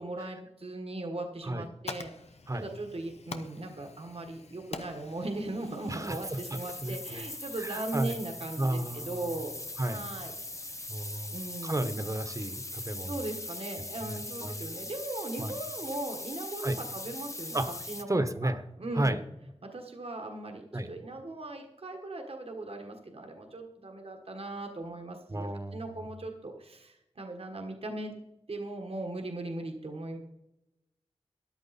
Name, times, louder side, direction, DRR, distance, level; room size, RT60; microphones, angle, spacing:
voice 1, 0.0-2.1 2.5-9.5 9.8-10.3 11.3-12.0 13.1-17.6 17.9-18.1 18.4-18.5 18.8-19.2 19.6-28.1 28.5-30.2, right 2 dB, 65° right, 3 dB, 1.5 m, -38 dB
Fire, 1.4-10.9, left 4 dB, 85° left, 0.9 m, -48 dB
sound 1, 5.6-18.0, left 2 dB, 30° left, 0.9 m, -41 dB
voice 2, 5.9-7.3 7.6-8.2 8.6-9.2 9.8-10.0 10.9-11.4 11.6-13.1 14.0-14.7 15.4-15.6 16.6-16.8 17.5-17.8 18.1-18.6 18.9-19.2 20.7-20.9 25.3-25.9, right 1 dB, 30° right, 11 dB, 1.1 m, -33 dB
13.5 x 11.0 x 4.2 m, 0.91 s
wide cardioid pair, 75°, 11 cm